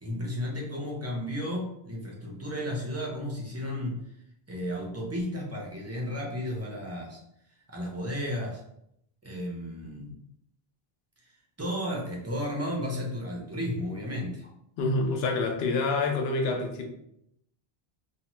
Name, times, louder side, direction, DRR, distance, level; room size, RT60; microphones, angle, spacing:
voice 1, 0.0-4.0 4.5-7.2 7.7-8.6 9.2-10.2 11.2-11.3 11.6-14.5, left 1 dB, 20° right, -2 dB, 0.4 m, -33 dB
voice 2, 14.8-16.9, left 3 dB, 75° left, 3 dB, 0.8 m, -27 dB
2.8 x 2.1 x 2.9 m, 0.75 s
omnidirectional pair, 1.1 m